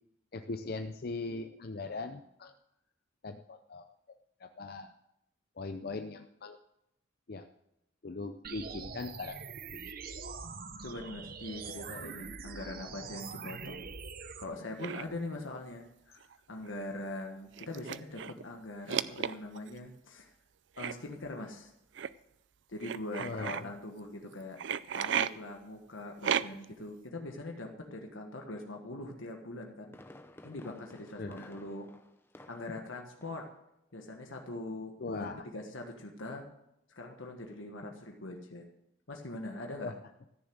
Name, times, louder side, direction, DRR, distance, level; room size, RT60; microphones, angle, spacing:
voice 1, 0.3-2.5 3.2-3.9 4.4-4.9 5.6-6.6 7.3-7.5 8.0-9.4 9.7-9.9 23.2-23.7 31.2-31.5 35.0-35.4 39.8-39.9, left 3 dB, 50° left, 6 dB, 0.6 m, -40 dB
sound 1, 8.4-14.4, right 5 dB, 50° right, 0.9 m, -44 dB
voice 2, 10.8-13.8 14.4-20.3 20.8-21.7 22.7-24.6 24.9-29.9 30.4-31.9 32.5-33.5 33.9-36.4 36.9-38.7 39.1-39.9, left 2 dB, 90° left, 3 dB, 1.4 m, -42 dB
sound 2, 14.8-15.0 16.2-16.3 16.7-16.8 17.5-18.4 18.9-19.7 20.8-20.9 22.0-22.1 22.8-23.6 24.6-25.3 26.2-26.7, right 8 dB, 65° right, 0.4 m, -33 dB
Fireworks, 29.4-32.9 33.2-33.6 33.9-34.0, left 1 dB, 10° left, 0.7 m, -54 dB
14.0 x 6.9 x 7.9 m, 0.82 s
head